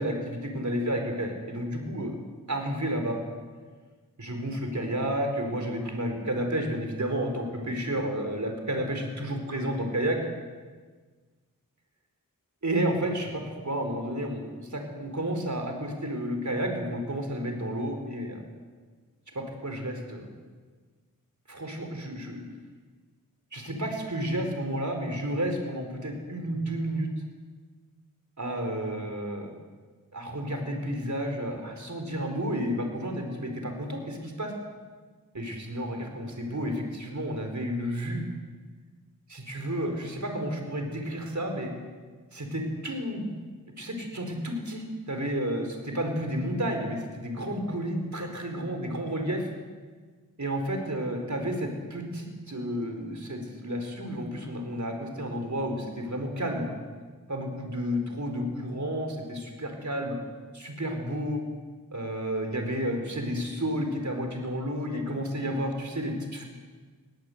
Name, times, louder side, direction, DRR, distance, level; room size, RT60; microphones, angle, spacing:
voice 1, 0.0-2.1 2.5-3.2 4.2-10.2 12.6-18.4 19.3-20.3 21.5-22.4 23.5-27.1 28.4-29.5 30.1-34.5 35.3-38.2 39.3-41.7 42.3-43.3 43.8-49.5 50.4-56.7 57.3-60.2 60.5-61.4 61.9-66.4, equal, 55° right, 4 dB, 4.6 m, -31 dB
20.5 x 18.5 x 8.0 m, 1.4 s
wide cardioid pair, 50°, 34 cm